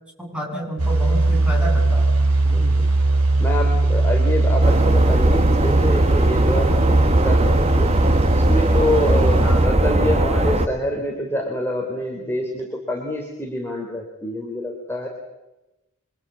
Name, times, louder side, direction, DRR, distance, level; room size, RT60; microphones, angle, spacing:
voice 1, 0.2-2.1 2.4-2.8 9.4-9.7, equal, 5° right, 0 dB, 7.4 m, -30 dB
sound 1, 0.8-9.7, right 2 dB, 85° right, 3.8 m, -19 dB
voice 2, 2.4-2.9 3.4-7.9 8.3-15.1, left 1 dB, 10° left, 0 dB, 3.4 m, -26 dB
sound 2, 4.6-10.7, right 1 dB, 30° right, 1.5 m, -19 dB
28.0 x 24.5 x 8.5 m, 1.0 s
head